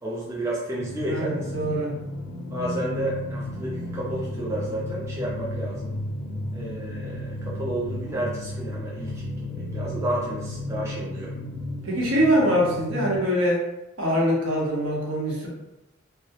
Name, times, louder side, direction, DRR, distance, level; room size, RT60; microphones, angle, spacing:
voice 1, 0.0-1.6 2.5-6.0 6.5-9.2 9.5-11.3, right 1 dB, 15° right, -6 dB, 0.3 m, -31 dB
sound 1, 0.8-13.2, left 1 dB, 90° left, 0.5 m, -33 dB
voice 2, 1.1-1.9 11.8-13.6 14.0-15.5, equal, 70° right, -4 dB, 0.7 m, -23 dB
2.2 x 2.0 x 2.8 m, 0.92 s
head